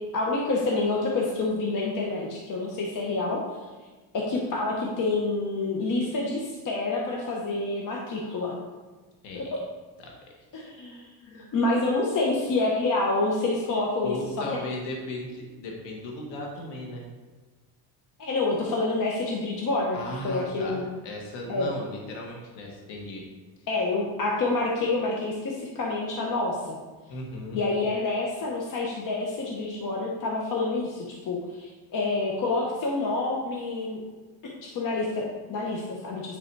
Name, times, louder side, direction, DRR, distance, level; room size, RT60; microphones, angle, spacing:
voice 1, 0.1-3.4 4.1-8.5 9.3-9.6 10.5-14.5 18.2-20.0 20.2-20.9 21.5-21.7 23.7-26.8 27.5-34.0 34.4-36.4, left 2 dB, 50° left, -2 dB, 1.2 m, -28 dB
voice 2, 9.2-9.5 10.0-10.6 14.0-17.0 19.9-23.3 27.1-27.6, left 1 dB, 80° left, 0 dB, 1.7 m, -36 dB
9.2 x 4.0 x 4.7 m, 1.3 s
cardioid pair, 135°, 42 cm